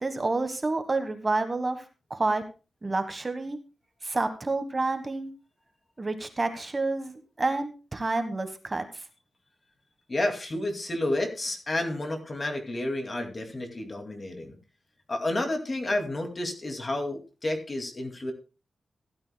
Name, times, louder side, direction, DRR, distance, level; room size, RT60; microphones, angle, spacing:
voice 1, 0.0-1.8 2.1-2.4 2.8-3.6 4.0-5.3 6.0-9.0, right 3 dB, 30° right, 8 dB, 1.3 m, -29 dB
voice 2, 10.1-14.5 15.1-18.3, left 1 dB, 35° left, 4 dB, 2.4 m, -30 dB
16.0 x 12.0 x 2.3 m, 0.31 s
wide cardioid pair, 105°, 0 cm